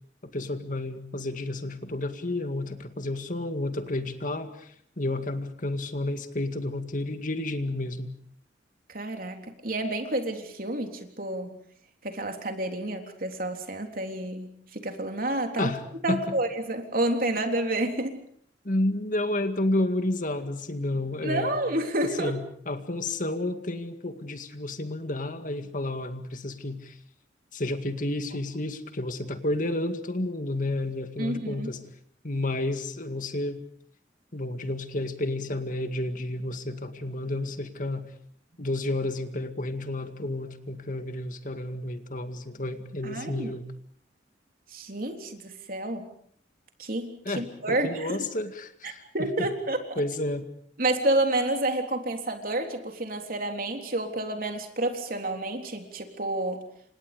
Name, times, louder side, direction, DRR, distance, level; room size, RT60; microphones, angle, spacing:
voice 1, 0.2-8.1 15.6-15.8 16.1-16.3 18.6-21.6 22.2-27.0 27.5-31.8 32.2-33.6 34.3-38.1 38.6-43.7 47.3-49.5 50.0-50.5, left 1 dB, 45° left, 8 dB, 2.1 m, -31 dB
voice 2, 8.9-11.6 12.0-15.7 16.0-18.2 21.2-22.3 31.2-31.7 43.0-43.6 44.7-46.1 46.8-48.1 48.8-49.8 50.8-56.6, right 1 dB, 55° right, 4 dB, 3.6 m, -29 dB
29.5 x 26.5 x 5.2 m, 0.62 s
head